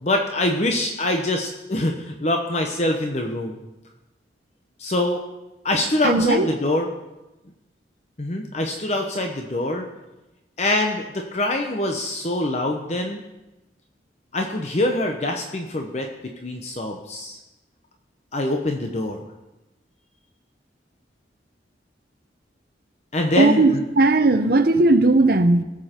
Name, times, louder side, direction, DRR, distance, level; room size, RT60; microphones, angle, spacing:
voice 1, 0.0-3.6 4.8-5.2 5.6-6.9 8.2-9.9 10.6-13.2 14.3-17.4 18.3-19.2 23.1-23.6, left 1 dB, 40° left, 0.9 m, -24 dB
voice 2, 6.0-6.5 23.3-25.6, right 2 dB, 55° right, 0.9 m, -17 dB
19.0 x 7.4 x 4.4 m
head